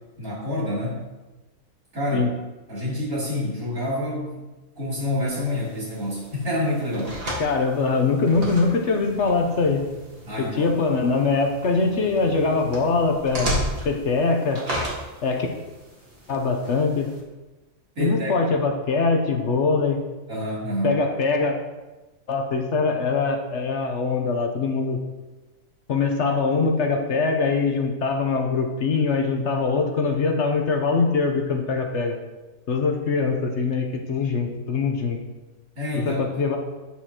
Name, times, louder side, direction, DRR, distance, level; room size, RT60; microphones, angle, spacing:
voice 1, 0.2-1.0 1.9-2.3 2.7-4.5 4.7-7.2 10.3-10.8 17.9-18.3 20.3-21.0 35.7-36.3, left 1 dB, 70° right, -7 dB, 3.5 m, -27 dB
sound 1, 5.3-17.2, equal, 45° right, 2.0 m, -35 dB
voice 2, 7.4-9.8 10.4-13.5 13.8-14.6 15.2-15.5 16.3-17.1 18.0-20.0 20.8-21.5 22.3-25.0 25.9-32.2 32.7-35.2 36.1-36.6, left 4 dB, 60° left, 4 dB, 1.0 m, -22 dB
8.7 x 7.1 x 2.9 m, 1.1 s
omnidirectional pair, 1.5 m